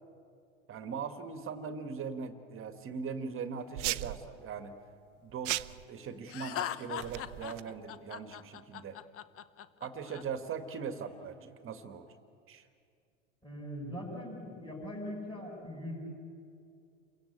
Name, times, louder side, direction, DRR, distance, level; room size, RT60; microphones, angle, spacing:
voice 1, 0.7-4.7 5.2-5.5 5.9-9.0 9.8-12.1 12.5-12.6, right 6 dB, 35° right, 8 dB, 1.7 m, -40 dB
sound 1, 3.8-4.2 5.4-5.8 7.0-7.6, right 18 dB, 70° right, 0.7 m, -35 dB
Laughter, 6.3-10.2, left 10 dB, 40° left, 1.0 m, -40 dB
voice 2, 13.4-16.0, equal, 15° left, -6 dB, 6.5 m, -41 dB
28.5 x 16.5 x 8.7 m, 2.4 s
hypercardioid pair, 95°, 37 cm